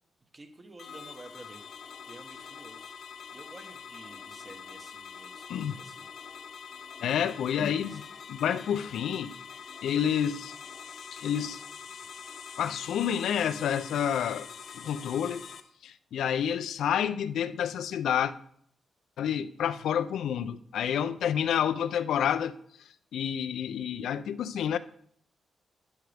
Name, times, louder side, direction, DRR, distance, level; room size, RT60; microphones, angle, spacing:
voice 1, 0.3-1.7 2.1-2.9 3.3-6.0 7.2-8.0 12.0-12.3, right 2 dB, 30° right, 1.3 m, -51 dB
sound 1, 0.8-15.6, left 7 dB, 65° left, 0.9 m, -45 dB
voice 2, 7.0-8.0 8.3-9.4 9.8-10.6 11.1-11.6 12.6-14.5 14.7-15.4 15.8-18.3 19.2-22.5 23.1-24.8, left 9 dB, 90° left, 0.5 m, -29 dB
11.0 x 9.9 x 3.5 m
cardioid pair, 105°, 0 cm